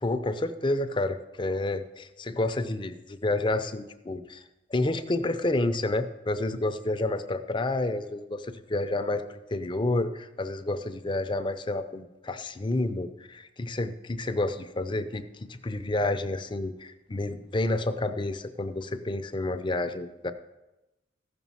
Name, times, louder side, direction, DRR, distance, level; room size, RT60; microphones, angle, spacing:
voice 1, 0.0-4.4 4.7-20.3, left 2 dB, 25° left, 9 dB, 0.5 m, -29 dB
14.5 x 6.1 x 5.6 m, 0.99 s
head